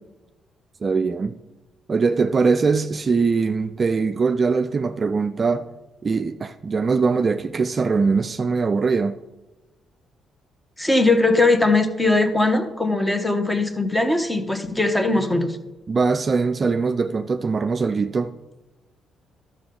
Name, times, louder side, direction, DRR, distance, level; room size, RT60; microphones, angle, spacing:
voice 1, 0.8-1.4 1.9-5.7 6.0-9.1 15.9-18.3, right 4 dB, 40° right, 0.4 m, -21 dB
voice 2, 10.8-15.6, left 2 dB, 10° left, 1.1 m, -20 dB
12.0 x 6.7 x 3.8 m
cardioid pair, 90°, 0 cm